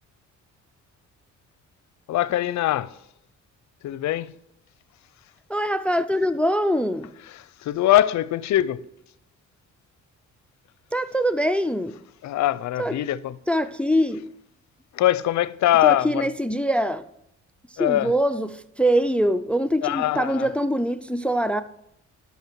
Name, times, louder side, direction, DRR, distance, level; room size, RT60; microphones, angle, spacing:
voice 1, 2.1-3.0 3.8-4.3 7.3-8.8 12.2-13.4 14.9-16.3 17.8-18.1 19.8-20.5, left 13 dB, 65° left, 0.6 m, -22 dB
voice 2, 5.5-7.1 10.9-12.0 12.8-13.0 13.5-14.2 15.8-17.0 17.8-21.6, equal, 5° left, 0.4 m, -23 dB
11.5 x 5.8 x 4.6 m
cardioid pair, 90°, 30 cm